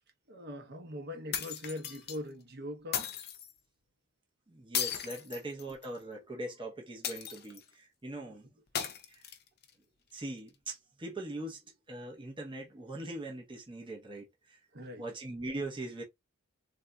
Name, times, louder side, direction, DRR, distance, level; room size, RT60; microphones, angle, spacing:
voice 1, 0.3-3.1 5.9-6.2 14.7-15.0, left 1 dB, 50° right, 0.9 m, -42 dB
sound 1, 1.3-2.2 2.9-3.5 4.7-6.0 7.0-7.7 8.7-9.7, left 9 dB, 50° left, 0.6 m, -36 dB
voice 2, 4.5-8.5 10.1-11.6 11.9-14.6 15.0-16.0, right 1 dB, 25° right, 0.8 m, -41 dB
3.6 x 2.6 x 2.3 m
head